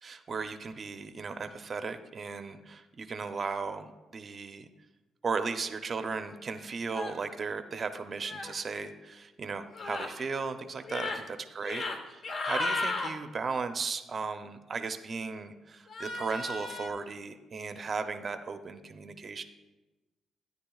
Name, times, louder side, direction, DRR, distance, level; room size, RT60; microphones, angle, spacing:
voice 1, 0.0-4.7 5.2-19.4, right 4 dB, 40° right, 9 dB, 0.6 m, -36 dB
sound 1, 6.9-7.2 8.2-8.5 9.7-10.1 10.8-11.2 11.6-12.0 12.2-13.1 15.9-16.9, left 3 dB, 50° left, 0.9 m, -34 dB
13.5 x 9.5 x 2.3 m, 1.1 s
cardioid pair, 90°, 0 cm